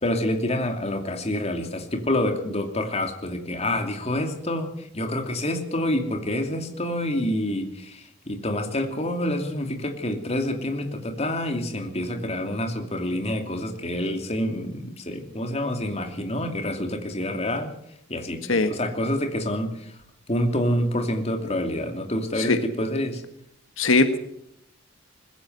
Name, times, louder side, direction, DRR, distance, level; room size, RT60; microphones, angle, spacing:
voice 1, 0.0-17.7 18.1-20.0 20.3-23.2, left 1 dB, 30° left, 5 dB, 2.7 m, -27 dB
voice 2, 23.8-24.2, left 3 dB, 75° left, 8 dB, 1.6 m, -20 dB
21.5 x 15.5 x 8.0 m, 0.75 s
head